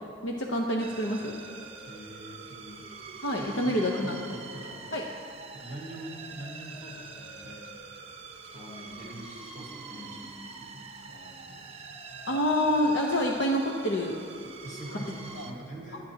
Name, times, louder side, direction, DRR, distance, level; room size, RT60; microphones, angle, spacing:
voice 1, 0.2-1.4 3.2-4.2 4.9-5.0 12.3-14.2 15.3-15.5, equal, 60° left, 0 dB, 0.9 m, -27 dB
sound 1, 0.8-15.5, right 4 dB, 30° right, 0.9 m, -45 dB
voice 2, 1.8-2.9 3.4-4.9 5.5-7.7 8.5-11.7 14.6-16.1, right 1 dB, 35° left, -5 dB, 2.7 m, -44 dB
23.5 x 10.0 x 2.9 m, 2.6 s
head